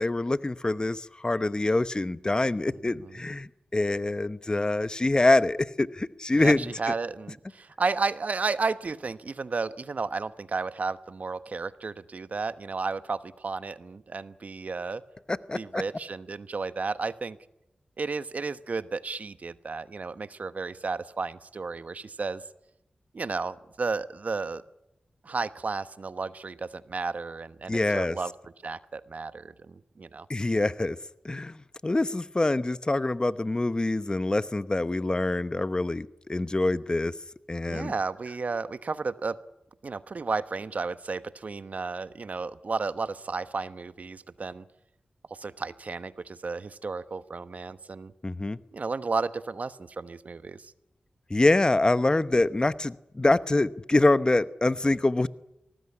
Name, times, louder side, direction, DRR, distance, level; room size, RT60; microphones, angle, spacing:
voice 1, 0.0-6.9 15.3-15.8 27.7-28.2 30.3-31.0 31.2-37.1 37.5-37.9 48.2-48.6 51.3-55.3, left 2 dB, 30° left, 14 dB, 1.0 m, -25 dB
voice 2, 6.3-15.0 15.5-17.4 18.0-22.4 23.1-24.6 25.2-28.3 28.6-30.3 37.7-39.4 39.8-44.6 45.3-48.1 48.7-50.7, right 4 dB, 60° right, 13 dB, 1.1 m, -33 dB
23.5 x 19.0 x 9.7 m, 0.86 s
cardioid pair, 60°, 3 cm